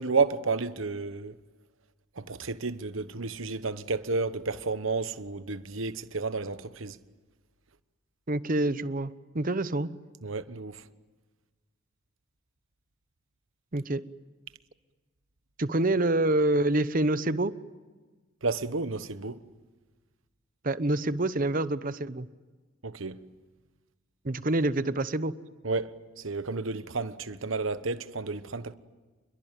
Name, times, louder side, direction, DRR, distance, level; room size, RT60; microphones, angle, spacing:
voice 1, 0.0-1.3 2.2-7.0 10.2-10.8 18.4-19.4 22.8-23.2 25.6-28.7, right 4 dB, 75° right, 1.2 m, -31 dB
voice 2, 8.3-9.9 13.7-14.0 15.6-17.5 20.6-22.3 24.2-25.3, right 2 dB, 40° right, 0.9 m, -27 dB
28.0 x 22.5 x 9.1 m
head